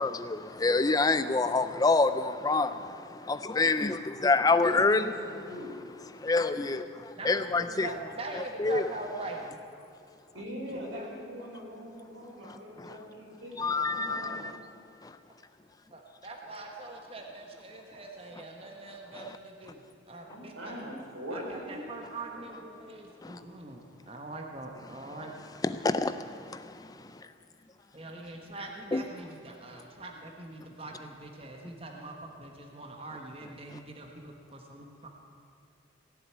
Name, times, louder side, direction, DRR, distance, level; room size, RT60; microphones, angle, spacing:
voice 1, 0.0-5.1 6.2-7.9 8.6-8.8 13.6-14.2 23.2-23.4 25.6-26.2 26.5-26.6 28.9-29.0, left 3 dB, 20° left, 11 dB, 0.4 m, -26 dB
voice 2, 4.3-5.7 10.3-14.5 19.7-19.8 20.3-22.7, equal, 90° right, -1 dB, 4.2 m, -42 dB
voice 3, 7.2-9.6 10.7-11.1 15.9-20.8 21.3-25.3 27.9-35.1, right 2 dB, 30° right, 2 dB, 1.2 m, -43 dB
17.5 x 7.9 x 9.7 m, 2.6 s
head